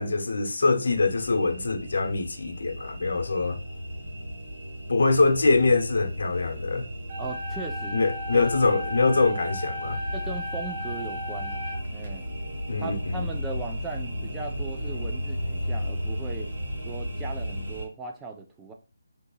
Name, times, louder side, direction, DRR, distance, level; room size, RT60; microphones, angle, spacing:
voice 1, 0.0-3.6 4.9-6.8 7.9-10.0 12.7-13.3, left 3 dB, 65° left, 0.7 m, -24 dB
sound 1, 0.9-17.9, equal, 60° right, 1.6 m, -34 dB
sound 2, 7.1-12.1, left 1 dB, 40° right, 0.8 m, -36 dB
voice 2, 7.2-8.0 8.3-8.5 10.1-11.6 11.9-12.2 12.8-16.5 16.9-18.7, right 4 dB, 10° right, 0.4 m, -38 dB
2.8 x 2.4 x 3.9 m
hypercardioid pair, 165°, 0 cm